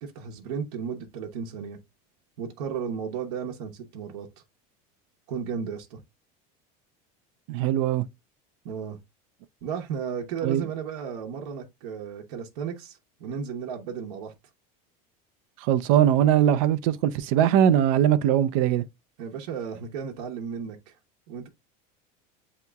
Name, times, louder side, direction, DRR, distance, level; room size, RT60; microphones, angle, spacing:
voice 1, 0.0-1.8 2.4-4.3 5.3-6.0 8.6-9.0 9.6-14.3 19.2-20.9 21.3-21.5, right 7 dB, 80° right, 0.9 m, -34 dB
voice 2, 7.5-8.1 10.4-10.6 15.6-18.8, right 10 dB, 60° right, 0.5 m, -21 dB
8.1 x 2.9 x 2.3 m
cardioid pair, 175°, 19 cm